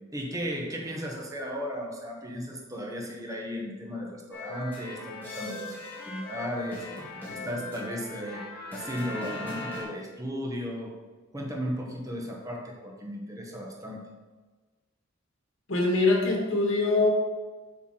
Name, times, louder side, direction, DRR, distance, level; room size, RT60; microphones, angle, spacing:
voice 1, 0.1-5.8 6.0-8.4 8.7-10.9 11.3-14.0, equal, 15° right, -1 dB, 1.3 m, -35 dB
sound 1, 4.3-9.8, left 2 dB, 10° left, 2.5 m, -39 dB
voice 2, 15.7-17.1, left 3 dB, 80° left, -2 dB, 2.3 m, -23 dB
7.5 x 6.0 x 4.5 m, 1.3 s
head